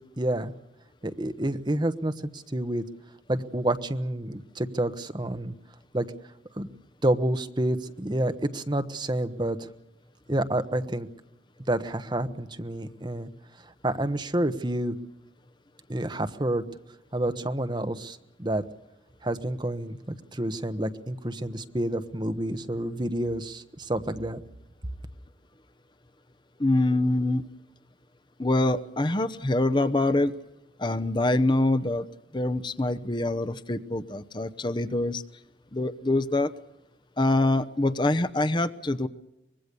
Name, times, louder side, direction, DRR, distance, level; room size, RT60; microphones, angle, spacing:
voice 1, 0.2-0.5 1.0-2.8 3.3-5.5 5.9-6.1 6.6-6.7 7.0-9.7 10.3-11.1 11.7-13.3 13.8-14.9 15.9-16.6 17.1-18.6 19.2-24.4, right 1 dB, 25° right, 10 dB, 1.2 m, -29 dB
voice 2, 26.6-27.4 28.4-30.3 30.8-32.1 32.3-35.2 35.7-36.5 37.2-39.1, left 2 dB, 25° left, 12 dB, 0.9 m, -25 dB
24.5 x 20.5 x 6.9 m, 0.92 s
head